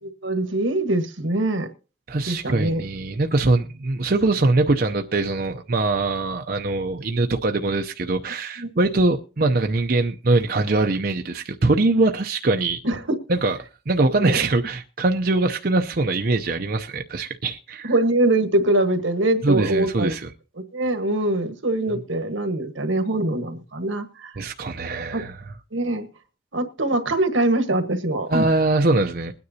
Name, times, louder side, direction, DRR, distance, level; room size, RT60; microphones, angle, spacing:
voice 1, 0.0-1.7 2.3-2.8 8.6-8.7 12.8-13.0 14.2-14.4 17.8-20.1 20.7-24.3 25.1-25.2 25.7-26.1 26.5-28.4, right 1 dB, 80° right, 1.5 m, -23 dB
voice 2, 2.1-12.8 13.3-13.6 13.9-17.9 19.4-20.3 24.4-25.4 28.3-29.3, right 2 dB, 50° right, 0.6 m, -22 dB
21.5 x 9.6 x 2.8 m
head